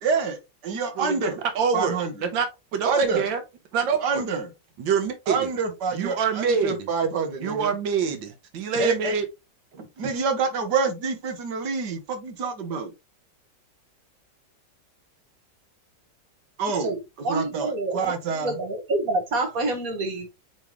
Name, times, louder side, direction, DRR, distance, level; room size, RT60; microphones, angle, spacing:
voice 1, 0.0-1.4 1.7-2.1 2.8-3.3 4.0-4.5 5.3-7.7 8.8-9.1 9.7-12.9 16.6-17.0 17.3-18.6, right 5 dB, 65° right, 1.9 m, -27 dB
voice 2, 1.0-1.3 1.5-2.5 2.7-3.4 3.7-4.2 4.8-5.4 5.9-6.8 7.4-9.2, right 5 dB, 90° right, 1.8 m, -25 dB
voice 3, 17.2-20.3, right 2 dB, 50° right, 2.1 m, -27 dB
9.0 x 3.5 x 3.1 m
omnidirectional pair, 2.0 m